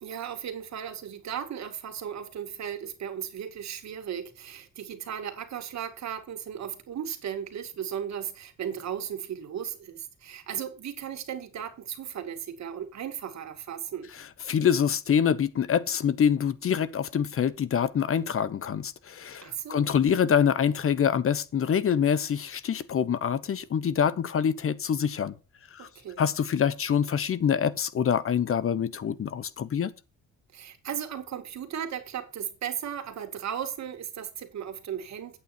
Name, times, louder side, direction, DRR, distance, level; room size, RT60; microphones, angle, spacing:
voice 1, 0.0-14.1 19.4-19.9 25.8-26.2 30.5-35.4, right 9 dB, 65° right, 2.2 m, -36 dB
voice 2, 14.5-25.3 25.7-25.9 26.2-29.9, left 8 dB, 45° left, 0.9 m, -25 dB
8.9 x 8.8 x 4.3 m
cardioid pair, 90°, 30 cm